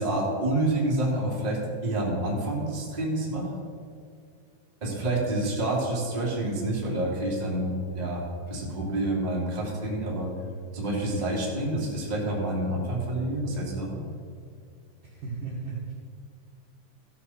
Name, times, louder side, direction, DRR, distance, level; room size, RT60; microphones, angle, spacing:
voice 1, 0.0-3.5 4.8-10.3 10.7-14.0, right 1 dB, 15° right, -5 dB, 1.7 m, -28 dB
voice 2, 15.0-15.9, right 4 dB, 60° right, -5 dB, 2.5 m, -35 dB
15.0 x 6.1 x 6.4 m, 2.3 s
omnidirectional pair, 5.6 m